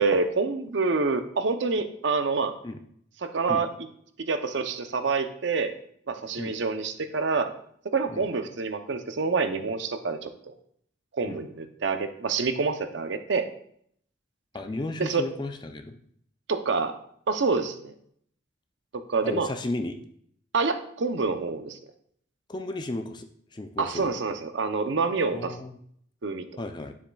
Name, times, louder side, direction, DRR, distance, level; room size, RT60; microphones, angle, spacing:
voice 1, 0.0-2.5 3.2-3.9 4.2-5.7 6.1-7.5 7.8-10.5 11.1-13.5 15.0-15.2 16.5-16.9 17.3-17.9 18.9-19.5 20.5-21.8 23.8-25.6 26.2-26.6, right 4 dB, 70° right, 8 dB, 0.6 m, -27 dB
voice 2, 14.5-16.0 19.2-20.0 22.5-23.3 23.5-24.1 25.3-25.7 26.6-27.0, left 2 dB, 25° left, 7 dB, 0.4 m, -34 dB
9.6 x 7.2 x 2.3 m, 0.66 s
head